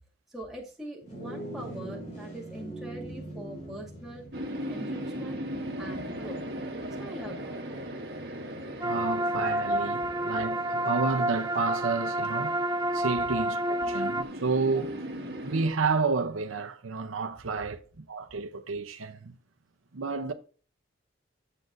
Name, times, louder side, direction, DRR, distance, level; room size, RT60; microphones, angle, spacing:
voice 1, 0.3-4.2 4.7-5.4 5.8-6.4 7.0-7.6, equal, ahead, 2.2 m, -42 dB
sound 1, 1.0-10.6, right 1 dB, 35° left, 4.2 m, -44 dB
sound 2, 4.3-15.7, right 1 dB, 55° right, 1.8 m, -38 dB
sound 3, 8.8-14.2, right 1 dB, 20° right, 0.4 m, -29 dB
voice 2, 8.8-12.6 12.9-15.0 15.4-19.4 19.9-20.3, right 4 dB, 85° right, 0.8 m, -30 dB
9.9 x 7.6 x 2.6 m
head